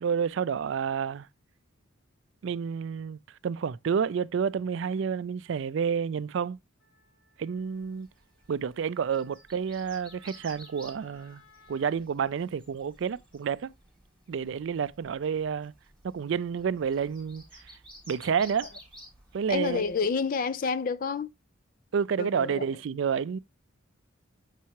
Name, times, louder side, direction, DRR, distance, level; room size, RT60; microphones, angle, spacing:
voice 1, 0.0-1.3 2.4-6.6 7.4-8.1 8.5-11.4 11.7-13.7 14.3-15.7 16.0-17.4 18.1-18.7 19.3-19.8 21.9-23.4, right 7 dB, 65° right, 0.3 m, -29 dB
Wind instrument woodwind instrument, 6.8-12.0, left 2 dB, 80° left, 4.7 m, -61 dB
sound 1, 7.7-20.2, equal, 5° left, 3.7 m, -54 dB
voice 2, 19.5-21.3 22.2-22.6, left 5 dB, 45° left, 0.4 m, -29 dB
7.4 x 5.6 x 2.9 m
head